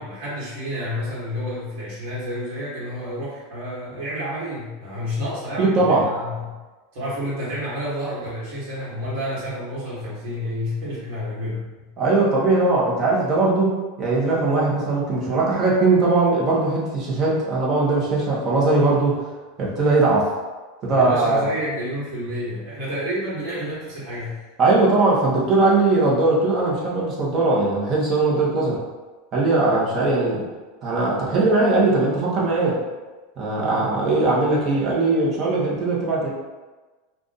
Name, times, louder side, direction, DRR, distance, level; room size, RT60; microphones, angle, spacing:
voice 1, 0.0-6.6 6.9-11.9 20.9-24.4 29.5-29.8 33.5-33.8, equal, 60° right, -8 dB, 1.3 m, -30 dB
voice 2, 5.6-6.0 12.0-19.2 19.6-20.3 20.8-21.5 24.6-28.8 29.3-30.5 30.8-32.8 33.4-36.3, right 3 dB, 30° right, -5 dB, 0.9 m, -20 dB
2.5 x 2.4 x 3.9 m, 1.2 s
supercardioid pair, 145°, 0 cm